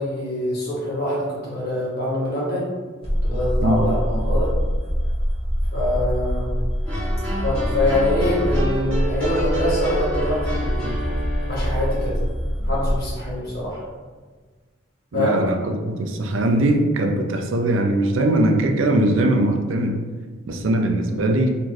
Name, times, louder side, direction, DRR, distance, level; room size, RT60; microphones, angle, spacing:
voice 1, 0.0-2.6 3.2-4.5 5.7-6.5 7.4-11.0 11.5-12.2 12.6-13.8 15.1-15.4, left 1 dB, 55° left, -7 dB, 1.5 m, -25 dB
sound 1, 3.0-13.1, equal, 30° left, 1.4 m, -24 dB
sound 2, 6.9-12.0, right 1 dB, 5° left, 1.4 m, -28 dB
voice 2, 15.1-15.6 15.8-20.0 20.5-21.6, right 1 dB, 75° right, 4 dB, 0.5 m, -20 dB
4.2 x 3.0 x 3.0 m, 1.4 s
head